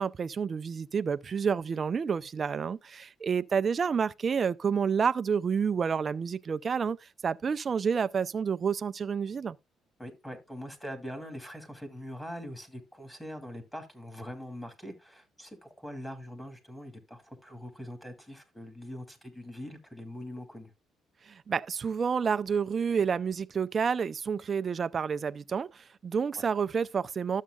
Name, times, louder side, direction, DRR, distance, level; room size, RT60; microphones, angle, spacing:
voice 1, 0.0-9.6 21.3-27.4, right 6 dB, 40° right, 0.4 m, -29 dB
voice 2, 10.0-20.7 26.3-26.5, equal, 10° left, 2.4 m, -43 dB
12.5 x 7.4 x 2.3 m
cardioid pair, 115°, 0 cm